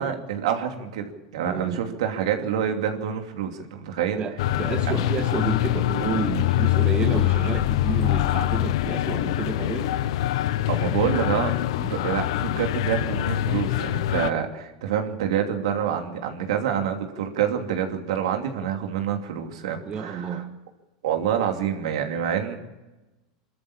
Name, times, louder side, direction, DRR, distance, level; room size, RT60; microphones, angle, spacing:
voice 1, 0.0-4.2 10.7-20.4 21.0-22.6, right 8 dB, 75° right, 4 dB, 2.8 m, -27 dB
voice 2, 1.5-1.9 4.2-10.0 10.3-10.6 19.9-20.6, right 6 dB, 30° right, 6 dB, 1.7 m, -30 dB
sound 1, 4.4-14.3, left 14 dB, 70° left, 0.8 m, -24 dB
23.0 x 13.5 x 8.7 m, 1.1 s
hypercardioid pair, 110°, 3 cm